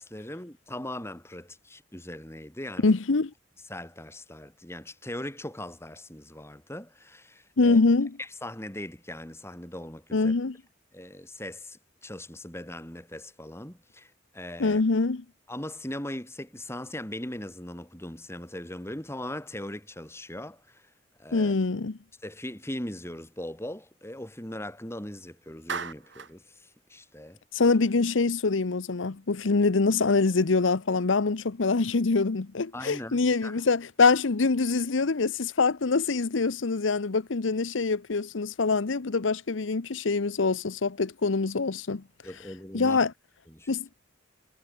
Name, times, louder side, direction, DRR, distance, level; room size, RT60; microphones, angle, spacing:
voice 1, 0.0-2.9 3.7-7.8 8.2-10.3 10.9-14.8 15.5-20.9 21.2-21.5 22.2-27.4 32.7-33.6 42.2-43.0 43.5-43.7, left 1 dB, 15° left, 5.1 m, -39 dB
voice 2, 2.8-3.3 7.6-8.1 10.1-10.6 14.6-15.2 21.3-22.0 27.5-42.0 42.7-43.1 43.7-43.9, left 4 dB, 90° left, 0.8 m, -24 dB
Clapping, 25.7-26.4, right 5 dB, 70° right, 2.4 m, -35 dB
head